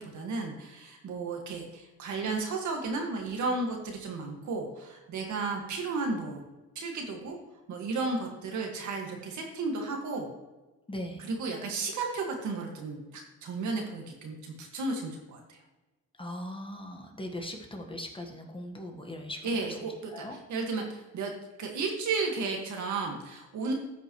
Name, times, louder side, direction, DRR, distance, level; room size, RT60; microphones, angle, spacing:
voice 1, 0.0-6.4 6.8-7.4 7.7-10.3 11.2-15.6 19.4-20.2 20.5-21.3 21.6-23.7, right 3 dB, 75° right, 1 dB, 1.9 m, -33 dB
voice 2, 10.9-11.3 16.2-20.4, left 1 dB, 15° left, 2 dB, 1.5 m, -40 dB
14.5 x 5.3 x 3.2 m, 1.1 s
cardioid pair, 90°, 30 cm